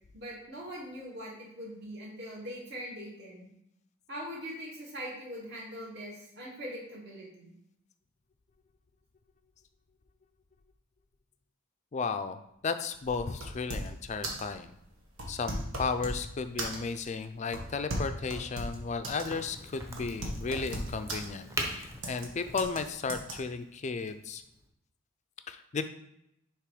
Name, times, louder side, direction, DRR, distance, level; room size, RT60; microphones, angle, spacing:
voice 1, 0.1-3.5 4.1-7.5, equal, 55° right, -5 dB, 2.2 m, -42 dB
voice 2, 11.9-14.7 15.3-24.4 25.5-25.8, left 4 dB, 35° left, 9 dB, 0.4 m, -34 dB
sound 1, 13.0-14.0 14.2-14.5 15.1-16.3 16.6-17.0 17.5-19.3 19.6-19.7 20.0-21.3 22.0-22.3 22.6-22.8 23.1-23.3, right 1 dB, 85° right, 1.4 m, -36 dB
Crack, 19.2-24.7, right 1 dB, 15° right, 0.8 m, -42 dB
6.8 x 3.0 x 4.9 m, 0.79 s
head